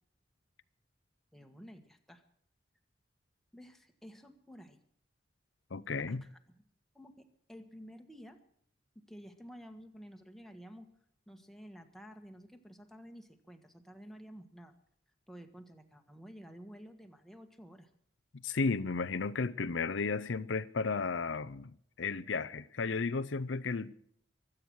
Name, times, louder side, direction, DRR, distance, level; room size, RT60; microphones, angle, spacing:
voice 1, 1.3-2.2 3.5-4.8 6.1-6.6 6.9-8.4 8.9-10.9 11.3-14.7 15.3-17.9, equal, ahead, 1.5 m, -52 dB
voice 2, 5.7-6.2 18.4-23.9, left 4 dB, 75° left, 0.6 m, -34 dB
23.5 x 8.9 x 6.3 m
head